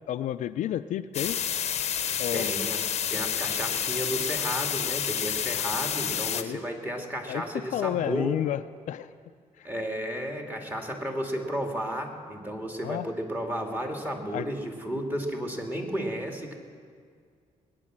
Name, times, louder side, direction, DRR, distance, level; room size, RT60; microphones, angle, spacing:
voice 1, 0.1-1.4 2.2-2.5 6.3-6.6 7.3-7.4 7.7-8.6 8.9-9.1 9.6-9.7 12.8-13.1 14.3-14.5, left 11 dB, 70° left, 11 dB, 0.5 m, -30 dB
sound 1, 1.1-6.4, left 9 dB, 55° left, 0.8 m, -29 dB
voice 2, 2.3-8.3 9.6-16.6, equal, 15° right, 2 dB, 2.3 m, -33 dB
20.0 x 9.7 x 7.5 m, 2.1 s
cardioid pair, 110°, 13 cm